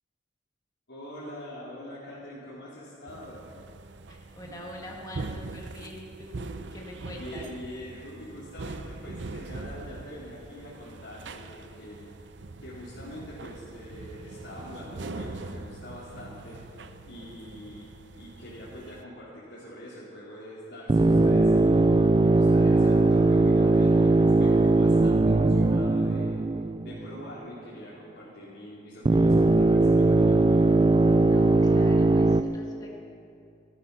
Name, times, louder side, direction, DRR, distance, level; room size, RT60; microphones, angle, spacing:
voice 1, 0.9-3.4 7.1-12.1 12.6-17.9 18.2-26.4 26.8-30.6, equal, 75° left, -9 dB, 3.3 m, -44 dB
sound 1, 3.1-19.0, right 3 dB, 70° right, 0.7 m, -42 dB
voice 2, 4.1-7.5 31.2-33.0, left 1 dB, 20° left, -2 dB, 1.6 m, -43 dB
sound 2, 20.9-27.2 29.1-32.4, right 2 dB, 25° right, 0.3 m, -20 dB
18.0 x 12.5 x 5.5 m, 2.6 s
head